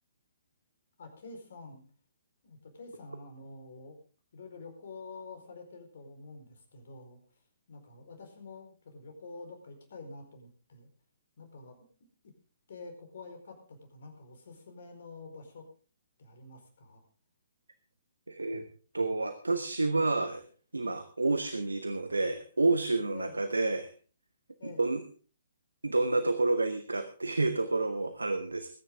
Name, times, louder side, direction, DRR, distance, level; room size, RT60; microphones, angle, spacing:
voice 1, 1.0-1.8 2.4-4.0 4.3-7.4 7.7-10.9 11.4-11.9 12.7-15.7 16.2-17.0 23.1-23.4 24.6-24.9, left 3 dB, 55° left, 5 dB, 4.5 m, -48 dB
voice 2, 18.3-18.7 18.9-20.4 20.7-23.9 24.6-25.0 25.8-28.7, right 3 dB, 75° right, 11 dB, 1.2 m, -29 dB
20.5 x 10.0 x 3.7 m, 0.38 s
figure-of-eight pair, 125°, 0 cm